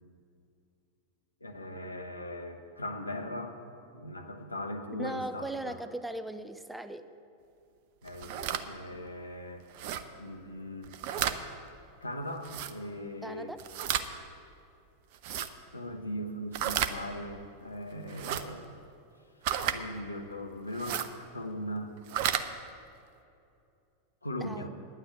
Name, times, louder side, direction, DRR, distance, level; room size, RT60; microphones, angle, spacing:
voice 1, 1.4-3.6 3.9-5.8 8.0-9.6 10.2-10.9 12.0-13.5 15.7-18.7 19.7-21.9 24.2-24.7, left 1 dB, 80° left, 4 dB, 1.1 m, -39 dB
voice 2, 5.0-7.1 13.2-13.6 24.4-24.7, right 1 dB, 5° right, 11 dB, 0.5 m, -38 dB
sound 1, 8.1-8.6 9.7-10.0 10.8-11.4 12.4-12.7 13.6-14.1 15.1-15.5 16.5-16.9 18.1-18.4 19.4-19.8 20.7-21.1 22.0-22.4, right 10 dB, 50° right, 0.7 m, -32 dB
10.0 x 9.4 x 8.4 m, 2.6 s
figure-of-eight pair, 90°, 0 cm